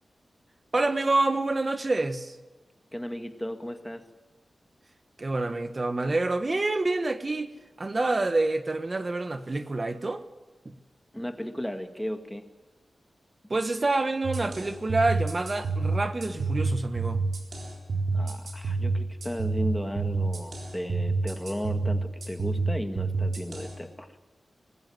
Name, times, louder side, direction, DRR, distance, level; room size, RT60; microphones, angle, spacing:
voice 1, 0.7-2.4 5.2-7.5 7.8-10.2 10.6-10.7 13.5-17.2, right 2 dB, 35° right, 1.3 m, -27 dB
voice 2, 2.9-4.0 11.1-12.4 18.1-24.1, equal, 5° left, 1.9 m, -35 dB
sound 1, 14.2-23.7, right 3 dB, 65° right, 4.1 m, -29 dB
20.0 x 15.5 x 9.5 m
wide cardioid pair, 90°, 0 cm